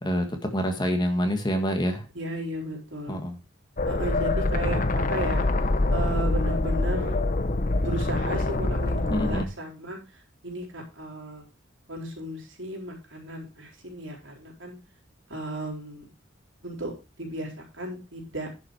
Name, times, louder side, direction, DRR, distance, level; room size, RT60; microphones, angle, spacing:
voice 1, 0.0-2.1 3.1-3.4 9.1-9.5, equal, 20° left, 5 dB, 1.6 m, -27 dB
voice 2, 2.2-3.2 3.9-5.5 5.9-7.2 7.8-11.5 11.9-14.8 15.3-16.1 16.6-16.9 17.2-18.5, right 1 dB, 75° right, 0 dB, 3.9 m, -35 dB
sound 1, 3.8-9.4, left 2 dB, 40° left, 0.9 m, -25 dB
10.5 x 6.0 x 4.9 m, 0.30 s
head